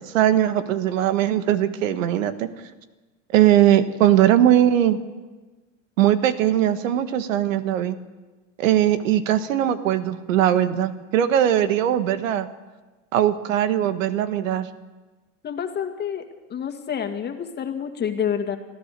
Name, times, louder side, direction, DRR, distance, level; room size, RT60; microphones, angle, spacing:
voice 1, 0.0-2.5 3.3-5.0 6.0-8.0 8.6-12.5 13.1-14.7, right 11 dB, 90° right, 10 dB, 1.6 m, -20 dB
voice 2, 15.4-16.2 16.5-18.6, left 8 dB, 25° left, 6 dB, 2.0 m, -28 dB
25.0 x 15.0 x 6.8 m, 1.2 s
supercardioid pair, 135°, 38 cm